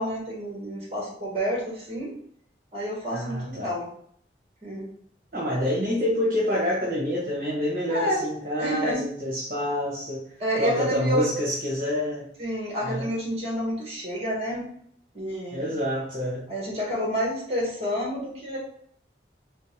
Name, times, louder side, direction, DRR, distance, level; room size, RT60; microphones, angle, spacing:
voice 1, 0.0-2.1 2.7-3.9 4.6-4.9 7.9-8.2 8.6-9.0 10.4-11.3 12.4-14.7 15.1-15.6 16.5-18.6, equal, 35° right, -4 dB, 1.8 m, -29 dB
voice 2, 3.1-3.7 5.3-10.2 10.6-12.3 12.8-13.1 15.5-16.4, equal, 55° right, -7 dB, 1.4 m, -27 dB
4.4 x 3.2 x 3.3 m, 0.65 s
head